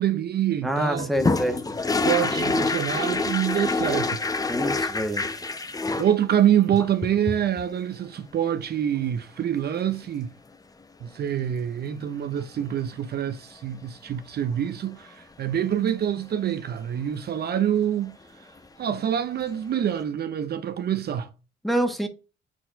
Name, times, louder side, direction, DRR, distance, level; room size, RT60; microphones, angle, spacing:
voice 1, 0.0-1.1 2.0-4.2 5.2-5.7 6.0-10.3 11.0-18.5 18.8-21.3, right 10 dB, 55° right, 0.6 m, -26 dB
voice 2, 0.6-1.6 4.5-5.2 21.6-22.1, equal, ahead, 1.3 m, -26 dB
sound 1, 1.0-6.1 6.7-7.7 9.7-9.8 10.0-10.1 12.4-12.6 18.6-18.7 18.9-19.0, left 3 dB, 20° left, 0.7 m, -26 dB
4.6 x 4.2 x 5.1 m
cardioid pair, 90°, 20 cm